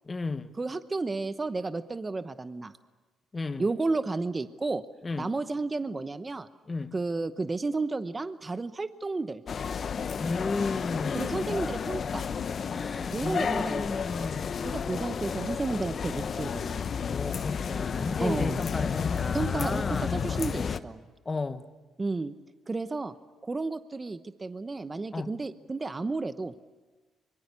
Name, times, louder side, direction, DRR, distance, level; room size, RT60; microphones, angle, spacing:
voice 1, 0.0-0.5 3.3-3.6 5.0-5.3 6.7-7.0 10.2-11.4 12.7-14.6 17.1-20.2 21.2-21.6 25.1-25.3, left 3 dB, 30° left, 1.3 m, -34 dB
voice 2, 0.6-2.7 3.6-4.8 5.2-6.5 6.9-9.4 11.1-12.3 13.1-14.0 14.6-16.8 18.2-18.6 19.3-19.9 20.1-21.0 22.0-22.3 22.7-23.1 23.4-26.5, right 3 dB, 25° right, 0.9 m, -32 dB
sound 1, 9.5-20.8, left 6 dB, 50° left, 1.0 m, -31 dB
25.0 x 23.5 x 8.3 m
cardioid pair, 90°, 0 cm